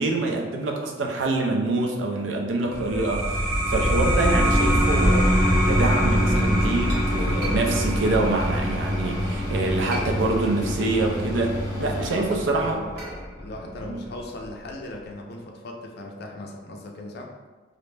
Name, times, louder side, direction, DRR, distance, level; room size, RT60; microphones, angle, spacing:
voice 1, 0.0-5.3 5.7-12.8 13.9-14.0, right 2 dB, 85° right, 1 dB, 0.4 m, -25 dB
sound 1, 2.7-13.9, equal, 15° right, 0.7 m, -24 dB
Mechanical fan, 4.4-12.9, equal, 20° left, 0.7 m, -32 dB
Chink clink, 6.9-9.2 9.7-10.7 11.0-15.1, right 1 dB, 60° right, 0.8 m, -40 dB
voice 2, 11.7-12.9 13.4-17.3, left 1 dB, 60° left, 1 dB, 0.4 m, -38 dB
2.4 x 2.1 x 3.2 m, 1.3 s
head